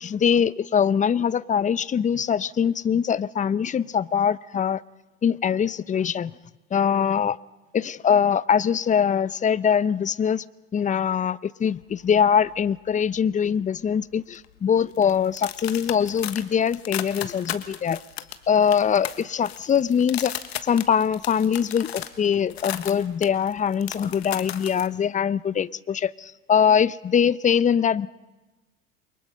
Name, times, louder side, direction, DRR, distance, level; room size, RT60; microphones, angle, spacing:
voice 1, 0.0-4.8 5.2-6.3 6.7-7.4 7.7-10.4 10.7-18.0 18.5-20.3 20.6-28.1, left 7 dB, 25° left, 0.7 m, -22 dB
sound 1, 11.8-13.2 13.5-13.9 14.3-24.9, left 11 dB, 85° left, 1.5 m, -36 dB
29.0 x 23.5 x 5.4 m
hypercardioid pair, 75°, 31 cm